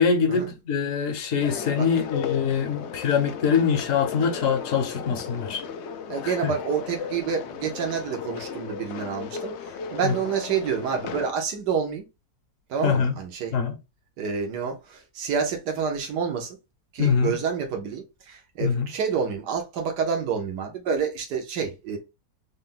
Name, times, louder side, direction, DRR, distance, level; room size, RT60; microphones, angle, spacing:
voice 1, 0.0-5.6 6.2-6.5 10.0-10.2 12.8-13.1 13.5-13.7 17.0-17.3 18.6-18.9, left 6 dB, 60° left, 1.2 m, -24 dB
sound 1, 1.4-11.3, left 7 dB, 80° left, 0.6 m, -35 dB
voice 2, 6.1-9.5 9.9-12.1 12.7-13.5 14.2-16.6 16.9-22.0, right 6 dB, 90° right, 1.5 m, -28 dB
4.0 x 2.2 x 3.7 m
omnidirectional pair, 1.7 m